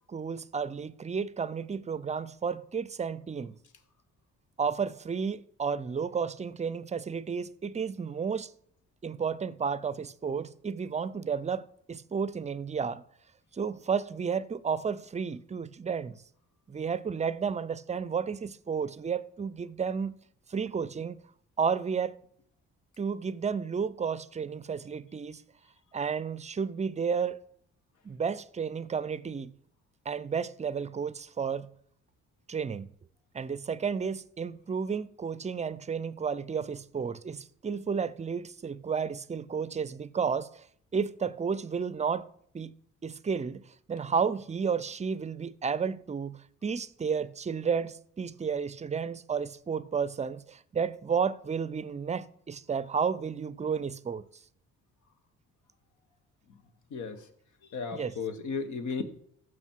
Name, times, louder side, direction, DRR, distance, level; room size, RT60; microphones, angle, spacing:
voice 1, 0.1-3.6 4.6-8.5 9.0-13.0 13.5-16.2 16.7-20.1 20.5-21.2 21.6-22.2 23.0-25.4 25.9-27.4 28.0-29.5 30.1-31.7 32.5-32.9 33.3-40.6 40.9-42.3 42.5-42.7 43.0-54.2 57.9-58.1, right 6 dB, 25° right, 0.5 m, -32 dB
voice 2, 56.9-57.2 57.7-59.0, left 5 dB, 75° left, 1.3 m, -34 dB
15.0 x 6.2 x 4.5 m
cardioid pair, 90°, 30 cm